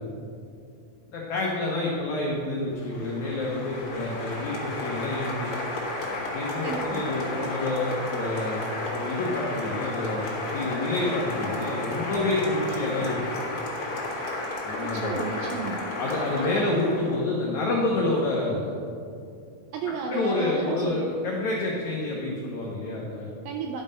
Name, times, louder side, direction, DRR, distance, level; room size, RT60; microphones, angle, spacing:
voice 1, 1.1-5.5 6.3-13.2 14.6-15.2 16.0-18.8 20.1-23.3, left 2 dB, 75° left, -3 dB, 1.7 m, -28 dB
Applause, 2.7-17.2, left 2 dB, 55° left, 2.5 m, -33 dB
voice 2, 6.6-7.1 14.8-15.8 16.5-16.8 19.7-21.1 23.5-23.8, right 5 dB, 85° right, 1 dB, 2.1 m, -33 dB
11.5 x 5.5 x 5.4 m, 2.5 s
omnidirectional pair, 4.7 m